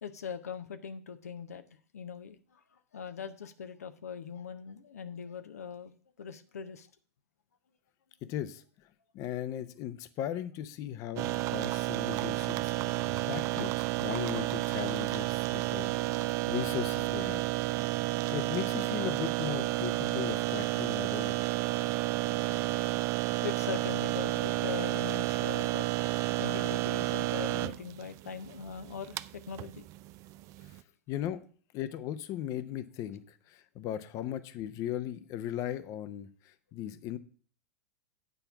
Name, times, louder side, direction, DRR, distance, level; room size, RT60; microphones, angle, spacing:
voice 1, 0.0-1.6 1.9-5.9 6.2-6.9 23.4-25.9 26.4-29.9, left 6 dB, 75° left, 9 dB, 0.7 m, -41 dB
voice 2, 8.3-8.6 9.1-15.9 16.5-17.4 18.3-21.4 30.6-30.7 31.1-31.4 31.7-37.2, left 11 dB, 40° left, 13 dB, 0.7 m, -37 dB
sound 1, 11.2-30.8, right 18 dB, 40° right, 0.4 m, -31 dB
9.3 x 4.5 x 7.0 m, 0.43 s
figure-of-eight pair, 95°, 8 cm